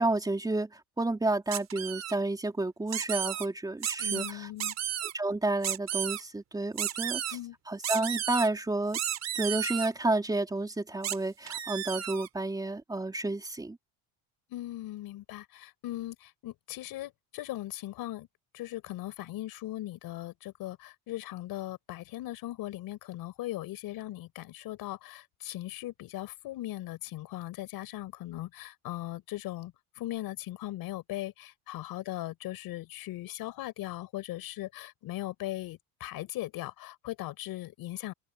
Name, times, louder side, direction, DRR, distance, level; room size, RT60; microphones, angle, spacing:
voice 1, 0.0-4.5 5.1-7.4 7.7-9.0 9.3-13.8, right 2 dB, 10° right, 3.6 m, -30 dB
sound 1, 1.5-2.2 2.9-3.5 3.8-4.3 4.6-5.1 5.6-6.2 6.8-7.4 7.8-8.5 8.9-9.9 11.0-11.2 11.5-12.3, right 10 dB, 40° right, 4.0 m, -33 dB
voice 2, 4.0-4.7 7.3-7.6 14.5-18.3 18.5-38.1, left 15 dB, 55° left, 5.0 m, -39 dB
cardioid pair, 155°, 42 cm